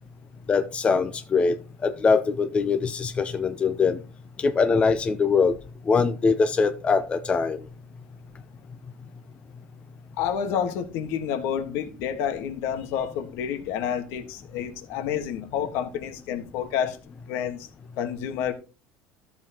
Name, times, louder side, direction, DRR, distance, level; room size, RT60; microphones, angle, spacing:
voice 1, 0.5-1.6 1.8-4.0 4.4-5.6 5.9-7.7, left 5 dB, 25° left, 0.6 m, -22 dB
voice 2, 10.2-17.0 17.3-17.7 18.0-18.5, left 8 dB, 70° left, 1.5 m, -29 dB
13.5 x 7.2 x 2.9 m
supercardioid pair, 120°, 5 cm